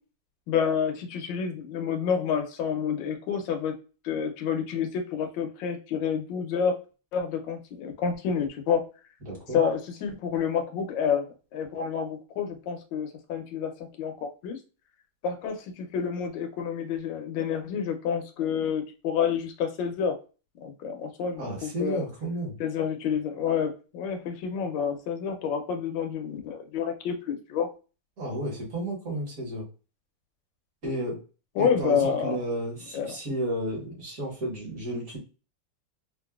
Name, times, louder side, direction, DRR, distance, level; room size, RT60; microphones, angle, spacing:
voice 1, 0.5-3.7 4.0-6.8 7.1-8.8 9.5-11.3 11.5-14.6 15.2-20.2 20.6-22.0 22.6-27.7 31.6-32.4 32.9-33.2, left 7 dB, 70° left, 5 dB, 1.3 m, -29 dB
voice 2, 9.2-9.6 21.4-22.6 28.2-29.7 30.8-31.2 31.6-35.2, right 1 dB, 45° right, -3 dB, 1.7 m, -32 dB
3.8 x 2.5 x 2.3 m, 0.34 s
omnidirectional pair, 2.4 m